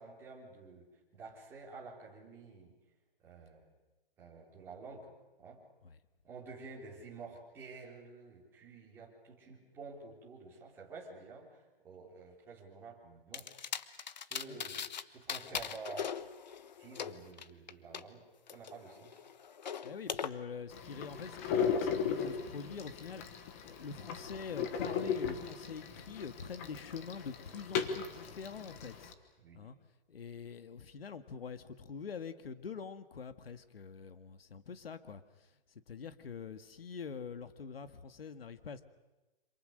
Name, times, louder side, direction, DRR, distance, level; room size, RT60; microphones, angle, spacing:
voice 1, 0.0-2.7 3.2-3.7 4.2-5.1 5.4-5.6 6.2-13.5 14.3-16.2 16.8-18.2 18.5-19.2 29.4-29.7, right 4 dB, 10° right, -4 dB, 3.7 m, -50 dB
sound 1, 13.3-15.0 15.3-18.0 18.5-20.3, left 7 dB, 50° left, 1.2 m, -40 dB
voice 2, 19.8-23.2 23.6-29.1 29.5-29.8 30.1-38.8, left 6 dB, 85° left, 10 dB, 1.9 m, -45 dB
sound 2, 20.7-29.1, left 6 dB, 15° left, 1.1 m, -37 dB
27.5 x 26.5 x 6.6 m, 1.1 s
hypercardioid pair, 180°, 29 cm